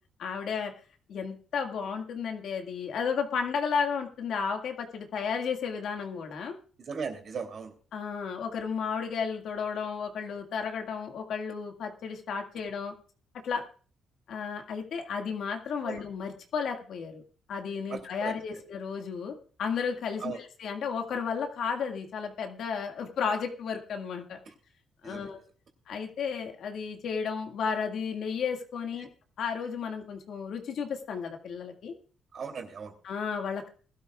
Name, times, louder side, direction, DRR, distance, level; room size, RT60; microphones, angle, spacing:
voice 1, 0.2-0.7 1.1-6.5 7.9-12.9 13.4-13.6 14.3-17.2 17.5-24.4 25.0-25.4 25.9-29.1 29.4-31.9 33.0-33.7, left 6 dB, 70° left, 3 dB, 1.9 m, -33 dB
voice 2, 6.8-7.7 15.8-16.0 17.9-18.3 20.2-20.4 25.0-25.3 32.3-32.9, right 5 dB, 55° right, 4 dB, 2.9 m, -37 dB
20.5 x 12.5 x 2.4 m, 0.41 s
cardioid pair, 90°, 0 cm